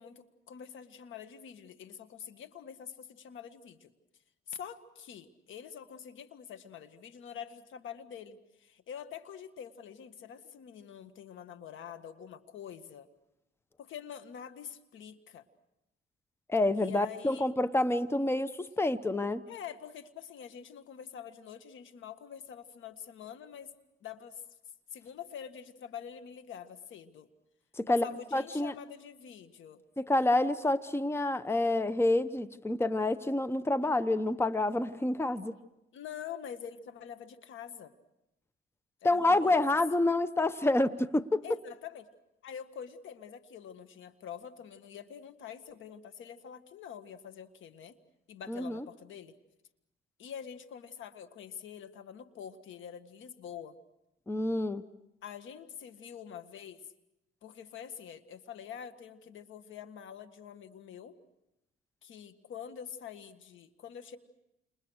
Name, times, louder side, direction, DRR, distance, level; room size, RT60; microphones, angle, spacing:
voice 1, 0.0-3.9 4.5-13.1 13.8-15.4 16.8-17.5 19.5-23.7 24.0-24.4 24.9-27.3 27.9-29.8 35.9-37.9 39.0-39.7 41.4-42.1 42.4-48.0 48.3-49.3 50.2-53.8 55.2-56.9 57.4-61.2 62.0-64.2, left 8 dB, 75° left, 1.8 m, -46 dB
voice 2, 16.5-19.4 27.8-28.0 28.3-28.7 30.0-35.5 39.0-41.4 48.5-48.8 54.3-54.8, left 2 dB, 10° left, 1.0 m, -28 dB
29.5 x 28.0 x 6.5 m
cardioid pair, 90°, 20 cm